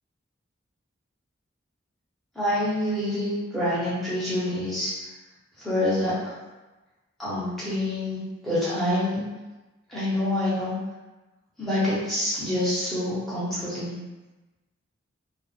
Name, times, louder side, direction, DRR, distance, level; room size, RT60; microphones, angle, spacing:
voice 1, 2.4-4.9 5.6-6.1 7.2-8.2 8.4-9.2 9.9-10.7 11.6-14.0, left 1 dB, ahead, -12 dB, 0.9 m, -26 dB
2.5 x 2.3 x 2.4 m, 1.1 s
head